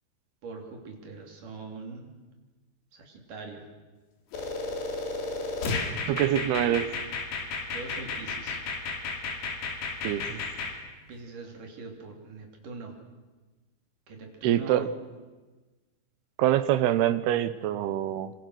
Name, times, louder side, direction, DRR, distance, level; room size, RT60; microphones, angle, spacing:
voice 1, 0.4-2.1 2.9-3.7 6.3-6.8 7.7-8.6 11.1-13.0 14.1-14.9, right 3 dB, 55° right, 2 dB, 4.6 m, -42 dB
sound 1, 4.3-10.7, left 4 dB, 70° left, 4.5 m, -33 dB
voice 2, 6.1-6.9 10.0-10.4 14.4-14.9 16.4-18.3, right 12 dB, 85° right, 13 dB, 3.0 m, -25 dB
26.5 x 25.5 x 6.4 m, 1.2 s
omnidirectional pair, 4.5 m